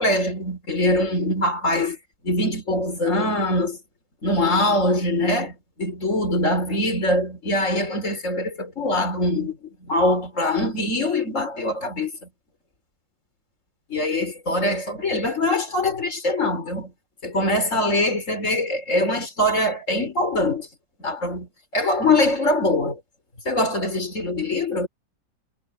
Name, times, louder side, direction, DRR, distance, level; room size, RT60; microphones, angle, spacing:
voice 1, 0.0-2.0 2.2-3.8 4.2-12.1 13.9-16.9 17.2-20.7 21.0-23.0 23.4-24.9, left 1 dB, 40° left, 4.9 m, -23 dB
omnidirectional pair, 2.1 m